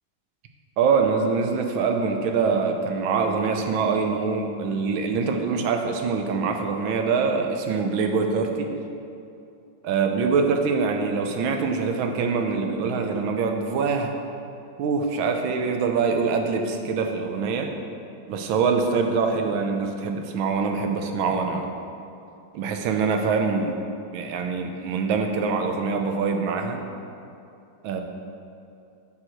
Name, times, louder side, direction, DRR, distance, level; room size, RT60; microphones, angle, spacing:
voice 1, 0.8-8.7 9.8-14.2 14.8-17.7 18.3-21.7 22.5-23.8 24.1-26.8 27.8-28.0, right 5 dB, 90° right, 4 dB, 1.5 m, -24 dB
7.4 x 4.6 x 6.4 m, 2.6 s
omnidirectional pair, 2.1 m